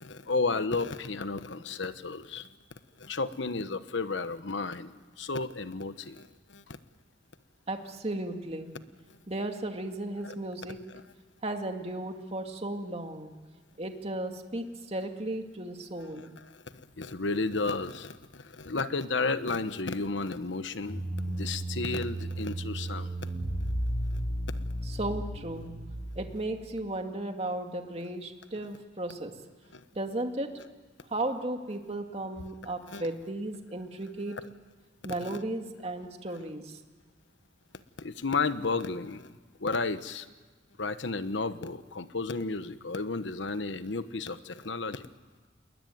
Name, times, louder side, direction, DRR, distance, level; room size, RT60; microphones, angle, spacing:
voice 1, 0.0-2.5 3.0-6.8 10.2-10.3 10.9-11.0 16.2-16.3 16.5-16.6 17.0-23.3 29.7-29.8 32.9-33.0 35.2-35.4 38.0-40.3 40.8-45.1, left 3 dB, 80° left, 12 dB, 1.1 m, -33 dB
voice 2, 7.7-8.7 9.3-10.8 11.4-13.3 13.8-16.3 24.8-25.7 26.2-29.3 30.0-30.5 31.1-34.4 35.0-36.8, right 1 dB, 35° right, 4 dB, 2.2 m, -35 dB
sound 1, 20.8-26.3, right 1 dB, 30° left, 6.3 m, -34 dB
28.0 x 21.5 x 9.4 m, 1.3 s
head